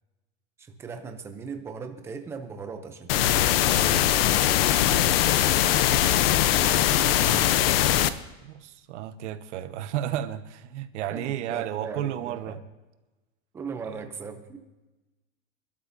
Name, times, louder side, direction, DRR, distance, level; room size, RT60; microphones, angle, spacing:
voice 1, 0.6-4.3 11.1-12.6 13.5-14.6, right 5 dB, 5° right, 6 dB, 0.4 m, -39 dB
sound 1, 3.1-8.1, left 12 dB, 45° left, 0.7 m, -21 dB
voice 2, 4.8-5.1 6.8-12.6 13.9-14.0, right 11 dB, 60° right, 10 dB, 1.1 m, -34 dB
27.5 x 12.5 x 2.7 m, 1.1 s
supercardioid pair, 165°, 40 cm